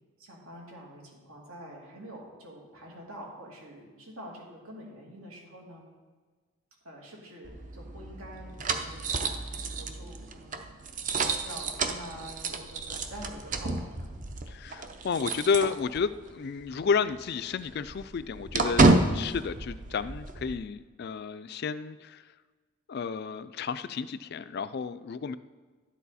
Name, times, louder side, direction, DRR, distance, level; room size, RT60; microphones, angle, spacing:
voice 1, 0.2-5.9 6.8-10.9 11.4-14.1, equal, 80° right, -2 dB, 2.7 m, -46 dB
sound 1, 7.4-16.3 16.6-16.7 17.1-20.5, right 3 dB, 35° right, 0.6 m, -30 dB
voice 2, 14.5-22.2 22.9-25.3, left 5 dB, 45° left, 14 dB, 0.3 m, -31 dB
11.5 x 9.4 x 4.2 m, 1.4 s
head